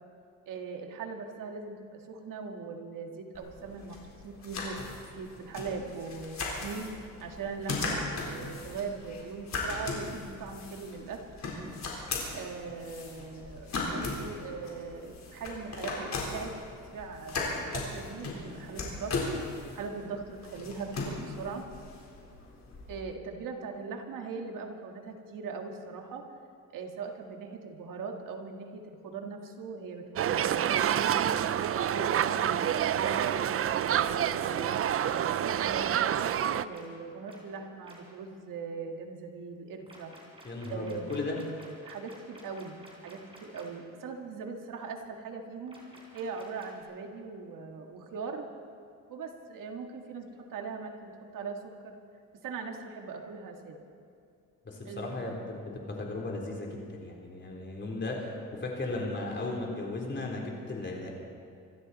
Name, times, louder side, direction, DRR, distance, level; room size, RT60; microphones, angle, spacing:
voice 1, 0.5-4.8 5.1-11.2 12.3-16.6 16.9-19.2 19.7-21.7 22.9-26.2 26.7-31.4 31.7-33.4 33.8-34.7 35.2-36.2 36.4-40.1 40.6-41.2 41.8-45.8 46.1-48.5 49.1-52.0 52.4-53.8 54.9-55.4, right 4 dB, 75° right, 3 dB, 2.0 m, -40 dB
sound 1, 3.3-23.0, left 3 dB, 55° left, 4.2 m, -38 dB
sound 2, 30.2-36.6, right 10 dB, 45° right, 0.5 m, -28 dB
sound 3, 33.5-33.6 34.0-34.1 34.5-34.7 35.0-35.2 35.6-35.7 36.1-36.3 36.7-36.8 37.3-37.4 37.8-37.9 39.9-43.6 45.7-46.8, right 2 dB, 15° right, 4.1 m, -53 dB
voice 2, 40.4-41.4 54.7-61.1, left 2 dB, 35° left, -1 dB, 3.6 m, -36 dB
26.0 x 12.5 x 4.2 m, 2.4 s
cardioid pair, 115°, 33 cm